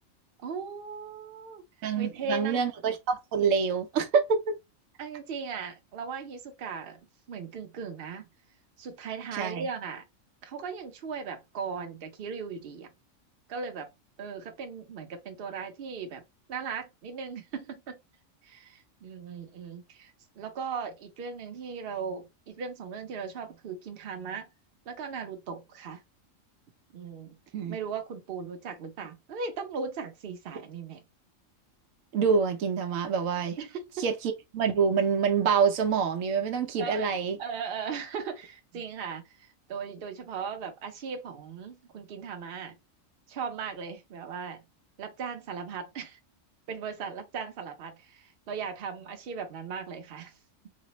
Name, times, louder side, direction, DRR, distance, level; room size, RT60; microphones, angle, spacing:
voice 1, 0.4-1.6 2.0-2.6 5.0-7.0 7.3-8.3 8.8-10.0 10.4-12.9 13.5-13.9 14.2-16.2 16.5-18.0 18.4-24.5 24.9-26.0 26.9-27.3 27.7-31.0 33.6-34.0 36.8-37.1 37.4-42.7 43.3-44.6 45.0-46.2 46.7-50.3, right 5 dB, 50° right, 0.9 m, -38 dB
voice 2, 1.8-4.6 9.3-9.7 27.5-27.8 32.1-33.6 34.0-37.4, right 6 dB, 80° right, 1.0 m, -26 dB
4.1 x 2.0 x 2.9 m
omnidirectional pair, 1.4 m